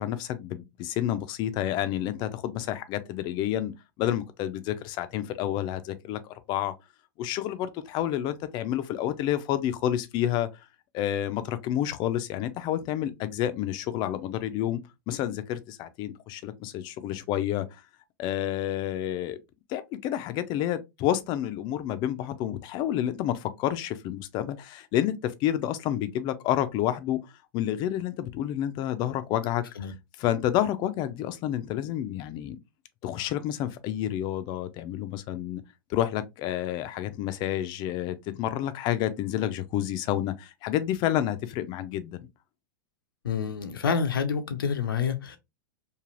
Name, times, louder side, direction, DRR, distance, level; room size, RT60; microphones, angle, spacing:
voice 1, 0.0-3.7 4.0-6.7 7.2-10.5 10.9-14.8 15.1-17.7 18.2-19.4 19.7-27.2 27.5-29.6 30.2-32.6 33.0-35.6 35.9-42.3, left 12 dB, 40° left, 0.5 m, -29 dB
voice 2, 43.2-45.4, left 6 dB, 85° left, 0.6 m, -28 dB
3.2 x 2.5 x 2.4 m
hypercardioid pair, 105°, 11 cm